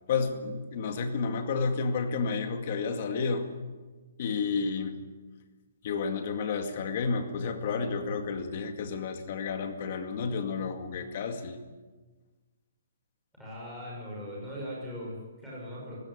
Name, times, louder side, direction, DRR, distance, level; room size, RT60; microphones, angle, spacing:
voice 1, 0.1-3.5 4.2-5.0 5.8-11.6, left 5 dB, 35° left, 6 dB, 2.1 m, -31 dB
voice 2, 13.3-16.0, equal, ahead, -8 dB, 6.4 m, -40 dB
19.5 x 16.0 x 9.8 m, 1.3 s
hypercardioid pair, 175°, 0 cm